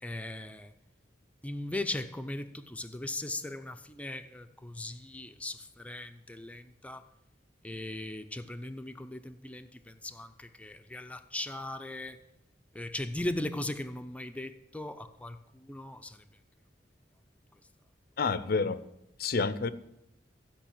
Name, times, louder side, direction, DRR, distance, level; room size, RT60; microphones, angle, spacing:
voice 1, 0.0-0.7 1.4-7.0 7.6-12.2 12.7-16.2, left 1 dB, 10° left, 0.7 m, -38 dB
voice 2, 18.2-18.8 19.2-19.7, left 4 dB, 55° left, 0.6 m, -28 dB
15.5 x 5.3 x 8.7 m
head